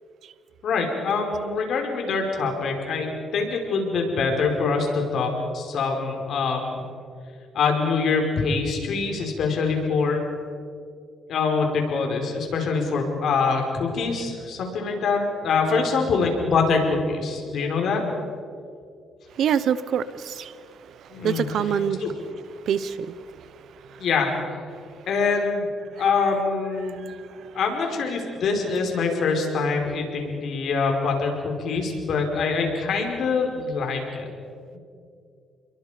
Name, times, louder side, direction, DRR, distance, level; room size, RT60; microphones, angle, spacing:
voice 1, 0.6-6.8 7.5-10.2 11.3-18.0 21.1-21.5 22.0-22.1 24.0-24.6 25.1-25.7 26.0-27.0 27.5-34.3 34.7-34.8, left 4 dB, 65° left, 2 dB, 5.1 m, -24 dB
voice 2, 19.4-20.5 21.2-22.0 22.7-23.2 23.9-24.0 26.8-27.5, right 8 dB, 70° right, 15 dB, 1.0 m, -26 dB
29.0 x 22.5 x 5.2 m, 2.3 s
cardioid pair, 90°, 0 cm